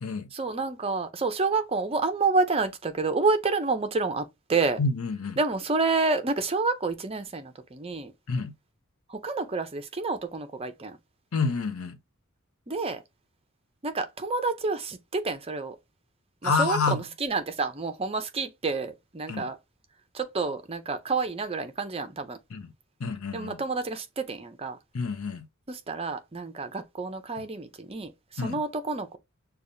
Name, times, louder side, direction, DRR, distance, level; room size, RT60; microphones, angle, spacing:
voice 1, 0.3-4.8 5.4-8.1 9.1-11.0 12.7-13.0 13.8-15.8 16.4-19.6 20.1-22.4 23.3-24.8 25.7-29.2, right 3 dB, 25° right, 0.6 m, -29 dB
voice 2, 4.8-5.4 8.3-8.5 11.3-12.0 16.4-17.0 19.3-19.5 22.5-22.7 23.0-23.6 24.9-25.5 28.4-28.6, left 4 dB, 75° left, 0.7 m, -28 dB
6.7 x 2.3 x 2.6 m
head